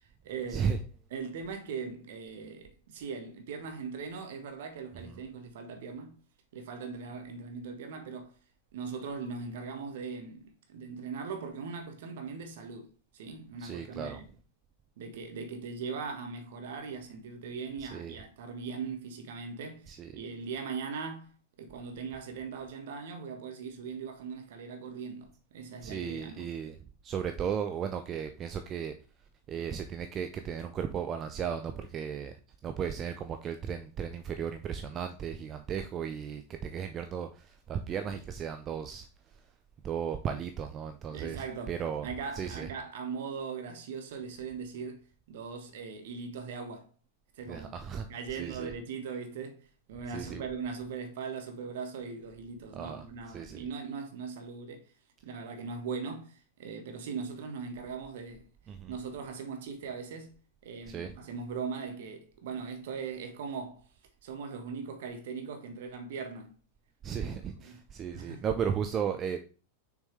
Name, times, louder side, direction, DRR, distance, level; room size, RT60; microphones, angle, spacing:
voice 1, 0.2-0.8 1.1-6.2 6.5-8.3 8.7-14.3 15.0-26.5 41.1-46.9 47.3-47.7 48.1-54.9 55.2-58.5 58.9-63.9 64.2-66.5 67.2-67.8 68.1-68.4, right 5 dB, 55° right, 1.4 m, -40 dB
voice 2, 13.6-14.2 17.8-18.2 19.9-20.1 25.8-26.8 27.0-28.9 29.5-32.3 32.6-39.1 39.8-42.1 42.3-42.7 47.5-48.0 48.3-48.7 50.1-50.5 52.7-53.6 58.7-58.9 60.9-61.1 67.0-69.4, right 7 dB, 30° right, 0.6 m, -35 dB
6.4 x 6.3 x 3.3 m
figure-of-eight pair, 90°, 0 cm